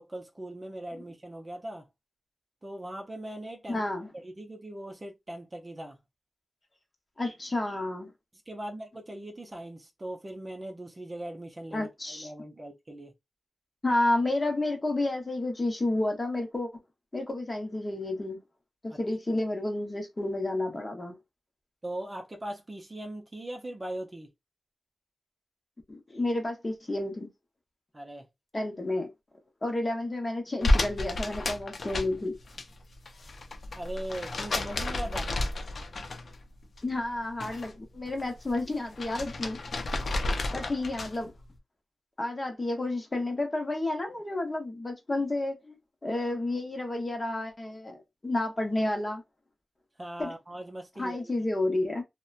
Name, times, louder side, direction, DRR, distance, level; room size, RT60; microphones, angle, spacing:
voice 1, 0.0-1.9 2.6-3.8 4.2-6.0 8.5-13.1 18.9-19.0 21.8-24.3 27.9-28.3 33.8-35.3 50.0-51.3, right 1 dB, 25° right, 0.5 m, -40 dB
voice 2, 3.7-4.1 7.2-8.1 11.7-12.3 13.8-16.7 17.1-18.4 18.8-21.2 25.9-27.3 28.5-29.1 29.6-32.4 36.8-39.6 40.5-41.3 42.2-49.2 50.2-50.3 51.0-52.0, left 2 dB, 25° left, 0.8 m, -31 dB
sound 1, 30.6-32.6 32.9-36.4 36.8-37.7 38.1-41.3, left 2 dB, 55° left, 0.5 m, -31 dB
2.8 x 2.1 x 2.3 m
wide cardioid pair, 120°, 0 cm